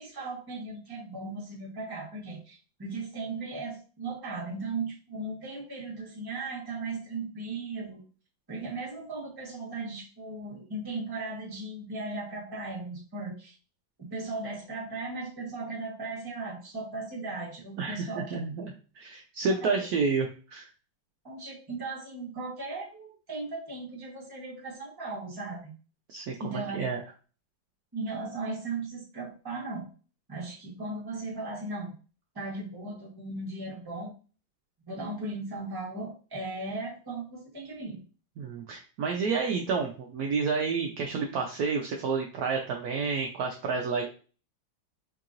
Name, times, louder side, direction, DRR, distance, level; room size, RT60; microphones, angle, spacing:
voice 1, 0.0-8.0 8.5-13.5 14.0-18.4 19.6-19.7 21.2-25.7 26.4-26.8 27.9-29.9 30.3-31.9 32.3-34.1 34.9-38.0, right 3 dB, 15° right, -5 dB, 0.8 m, -37 dB
voice 2, 17.8-20.7 26.1-27.0 38.4-44.1, right 4 dB, 80° right, 1 dB, 0.8 m, -30 dB
4.6 x 2.8 x 2.5 m, 0.37 s
omnidirectional pair, 2.2 m